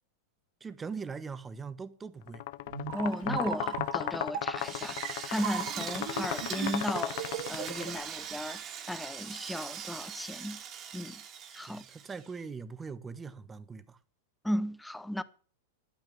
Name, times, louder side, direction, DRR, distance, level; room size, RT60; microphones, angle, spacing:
voice 1, 0.6-2.4 11.6-14.0, right 5 dB, 15° right, 1.1 m, -41 dB
sound 1, 2.3-8.0, left 17 dB, 60° left, 0.6 m, -36 dB
sound 2, 2.7-7.9, right 8 dB, 60° right, 1.7 m, -38 dB
voice 2, 2.9-8.6 8.9-10.6 10.9-11.2 11.5-11.8 14.4-15.2, equal, 5° left, 0.8 m, -35 dB
Drill, 4.6-12.4, right 8 dB, 35° right, 1.9 m, -41 dB
11.5 x 9.1 x 7.4 m
hypercardioid pair, 115°, 0 cm